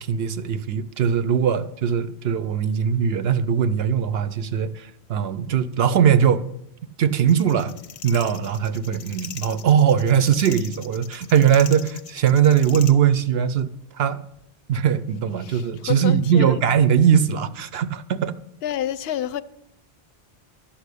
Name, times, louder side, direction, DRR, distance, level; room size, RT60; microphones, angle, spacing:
voice 1, 0.0-6.5 7.0-7.7 8.0-13.7 13.9-14.2 14.7-18.4, right 8 dB, 70° right, 0.8 m, -20 dB
sound 1, 7.3-12.9, left 8 dB, 90° left, 1.0 m, -40 dB
voice 2, 15.4-16.6 18.6-19.4, left 11 dB, 70° left, 0.8 m, -29 dB
12.0 x 5.7 x 8.3 m
omnidirectional pair, 1.1 m